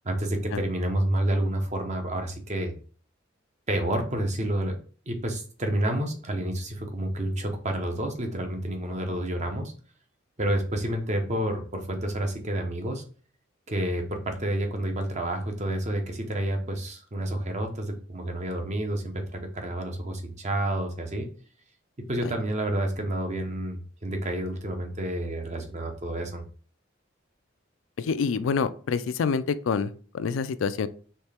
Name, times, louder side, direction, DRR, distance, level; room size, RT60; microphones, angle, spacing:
voice 1, 0.0-2.7 3.7-4.7 5.1-9.7 10.4-13.0 13.7-21.3 22.0-26.4, right 1 dB, 35° right, 4 dB, 0.9 m, -29 dB
voice 2, 28.0-30.9, left 5 dB, 80° left, 13 dB, 0.4 m, -27 dB
4.3 x 3.2 x 3.5 m, 0.40 s
head